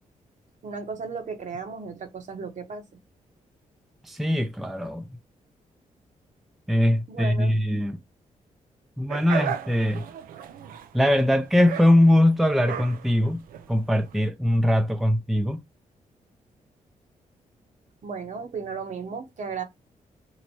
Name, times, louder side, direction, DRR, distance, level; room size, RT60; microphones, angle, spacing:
voice 1, 0.6-2.8 7.1-7.5 18.0-19.6, right 5 dB, 60° right, 1.0 m, -35 dB
voice 2, 4.1-5.0 6.7-8.0 9.0-10.0 10.9-13.4 13.7-15.6, left 1 dB, ahead, 0.5 m, -21 dB
sound 1, 9.1-14.1, right 9 dB, 85° right, 0.4 m, -36 dB
3.0 x 2.1 x 4.1 m
cardioid pair, 65°, 14 cm